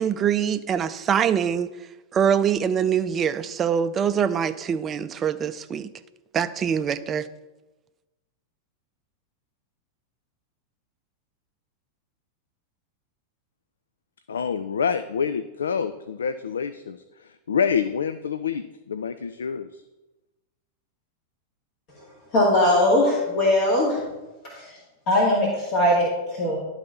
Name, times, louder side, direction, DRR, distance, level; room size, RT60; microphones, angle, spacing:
voice 1, 0.0-1.7 2.1-5.9 6.3-7.3, right 8 dB, 25° right, 13 dB, 0.5 m, -24 dB
voice 2, 14.3-19.8, left 6 dB, 70° left, 12 dB, 0.3 m, -27 dB
voice 3, 22.3-24.0 24.5-24.7 25.1-26.6, left 1 dB, 45° left, -4 dB, 2.1 m, -20 dB
11.5 x 4.0 x 5.8 m, 1.1 s
figure-of-eight pair, 90°, 0 cm